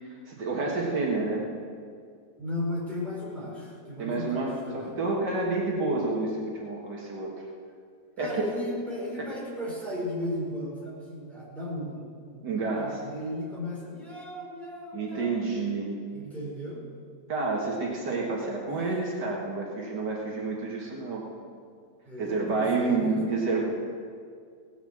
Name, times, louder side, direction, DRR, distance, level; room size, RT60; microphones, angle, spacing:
voice 1, 0.0-1.4 4.0-7.3 8.2-8.3 12.4-12.9 14.9-15.9 17.3-21.2 22.2-23.7, right 3 dB, 70° right, -2 dB, 2.2 m, -29 dB
voice 2, 2.4-4.9 8.2-15.3 16.1-16.8 22.0-23.2, left 1 dB, ahead, -6 dB, 4.5 m, -35 dB
17.5 x 7.1 x 7.4 m, 2.2 s
omnidirectional pair, 1.9 m